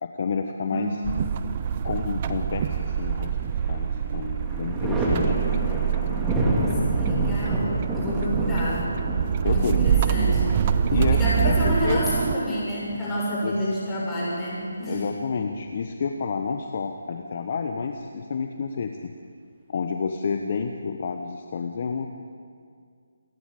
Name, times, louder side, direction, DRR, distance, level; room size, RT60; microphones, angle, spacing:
voice 1, 0.0-1.0 1.8-5.4 9.4-9.8 10.9-11.2 11.4-12.0 13.0-13.1 13.4-13.5 14.8-19.1 19.7-22.1, left 5 dB, 45° left, 5 dB, 1.2 m, -29 dB
voice 2, 0.6-1.2 6.3-8.8 9.5-10.5 11.1-15.0, equal, 10° left, -8 dB, 7.2 m, -29 dB
sound 1, 1.0-12.3, right 8 dB, 30° right, 0.7 m, -25 dB
Thunder, 3.0-3.8 4.1-13.7 15.2-16.1, right 1 dB, 5° right, 2.4 m, -29 dB
28.0 x 11.5 x 8.5 m, 2.1 s
figure-of-eight pair, 160°, 0 cm